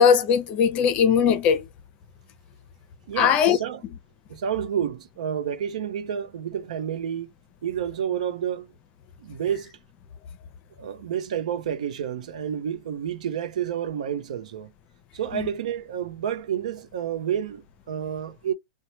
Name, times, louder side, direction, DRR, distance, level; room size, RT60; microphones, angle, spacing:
voice 1, 0.0-1.7 3.2-3.6 15.3-15.5, left 7 dB, 35° left, 0.6 m, -19 dB
voice 2, 3.1-3.8 4.3-7.3 7.6-8.7 9.2-9.7 10.8-14.7 15.1-18.5, right 9 dB, 75° right, 0.6 m, -29 dB
2.9 x 2.2 x 2.8 m
hypercardioid pair, 130°, 4 cm